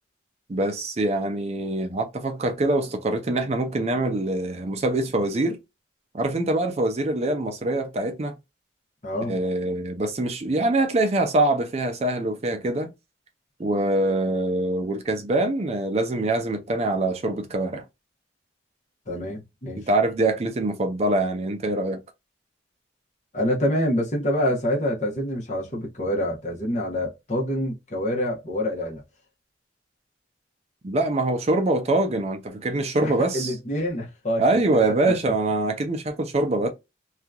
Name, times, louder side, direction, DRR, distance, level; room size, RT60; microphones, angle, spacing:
voice 1, 0.5-5.6 6.1-8.3 9.3-12.9 13.6-17.8 19.8-22.0 30.8-33.5 34.4-36.7, right 2 dB, 35° right, 0.4 m, -24 dB
voice 2, 9.0-9.4 19.1-19.8 23.3-29.0 33.0-34.5 35.1-35.3, equal, 40° left, 0.9 m, -26 dB
2.8 x 2.3 x 2.3 m
head